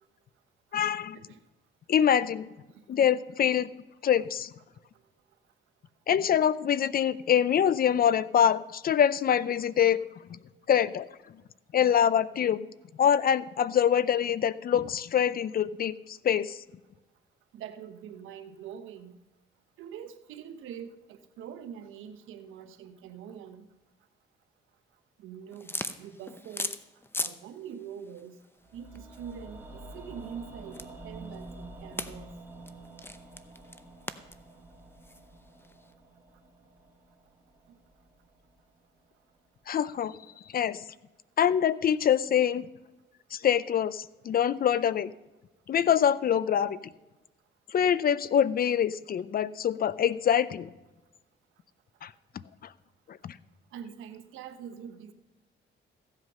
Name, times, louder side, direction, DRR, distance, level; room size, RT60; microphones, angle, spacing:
voice 1, 0.7-1.2 1.9-2.5 2.9-3.7 4.0-4.5 6.1-10.0 10.3-10.4 10.7-11.1 11.7-12.7 13.0-16.6 39.7-40.1 40.5-40.8 41.4-42.7 43.3-45.1 45.7-46.8 47.7-50.7 52.0-52.1 53.2-53.3, left 9 dB, 50° left, 17 dB, 0.5 m, -25 dB
voice 2, 17.5-19.2 19.8-23.7 25.2-26.7 27.2-28.4 28.7-32.3 37.7-37.8 53.7-55.1, right 8 dB, 85° right, 9 dB, 1.0 m, -44 dB
sound 1, 25.5-27.4 27.7-35.9, left 2 dB, 10° left, 0.7 m, -40 dB
sound 2, 28.6-38.8 39.0-39.1, right 2 dB, 10° right, 2.5 m, -48 dB
15.0 x 8.1 x 5.4 m, 1.1 s
cardioid pair, 90°, 20 cm